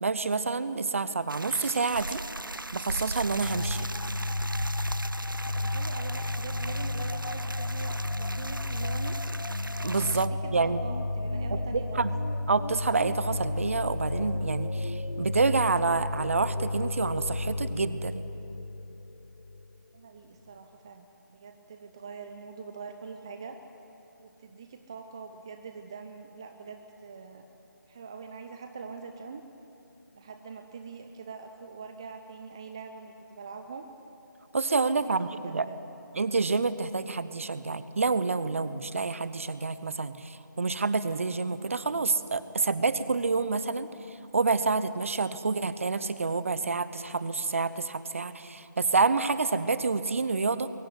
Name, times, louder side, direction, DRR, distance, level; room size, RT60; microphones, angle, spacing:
voice 1, 0.0-2.2 2.7-3.9 9.8-10.8 11.5-12.1 12.5-18.2 34.5-35.7 36.2-50.7, right 4 dB, 40° right, 14 dB, 0.9 m, -28 dB
sound 1, 1.3-10.3, right 2 dB, 85° right, 0.7 m, -38 dB
Spooky drone G, 3.4-19.8, left 2 dB, 85° left, 0.5 m, -33 dB
voice 2, 5.5-9.2 10.1-12.1 19.9-23.6 24.2-27.5 27.9-29.4 30.1-33.9 34.8-35.8, right 5 dB, 15° right, 7 dB, 0.4 m, -43 dB
22.5 x 17.0 x 9.7 m, 2.8 s
figure-of-eight pair, 155°, 11 cm